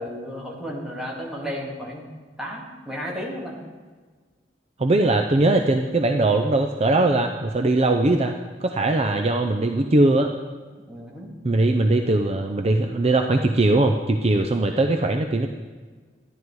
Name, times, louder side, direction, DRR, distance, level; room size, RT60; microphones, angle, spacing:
voice 1, 0.0-2.1 2.4-3.6 10.9-11.3, equal, 5° right, -3 dB, 2.3 m, -33 dB
voice 2, 4.8-8.3 8.6-10.3 11.4-15.5, right 2 dB, 35° right, 5 dB, 0.6 m, -20 dB
13.0 x 10.5 x 4.7 m, 1.4 s
head